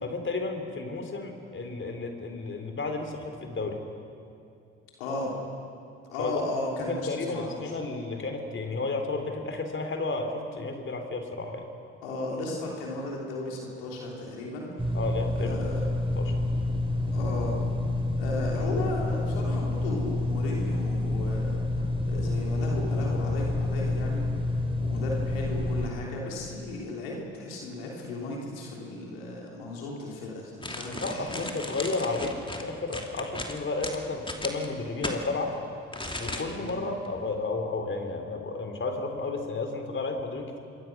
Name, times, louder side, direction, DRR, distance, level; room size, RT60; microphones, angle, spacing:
voice 1, 0.0-3.8 6.2-6.5 6.9-11.7 14.9-15.7 16.2-16.4 31.0-35.6 36.2-40.6, left 3 dB, 40° left, 5 dB, 3.6 m, -32 dB
voice 2, 5.0-5.4 6.1-7.7 12.0-14.9 15.3-15.9 17.1-17.5 18.2-21.8 22.1-24.3 24.8-31.6 36.5-36.8, left 2 dB, 85° left, -2 dB, 3.3 m, -35 dB
sound 1, 14.8-25.9, left 2 dB, 20° right, 4.2 m, -28 dB
sound 2, 30.6-35.2 35.9-36.7 37.0-37.2, left 1 dB, 15° left, 2.7 m, -36 dB
27.0 x 21.5 x 6.1 m, 2.6 s
hypercardioid pair, 50°, 29 cm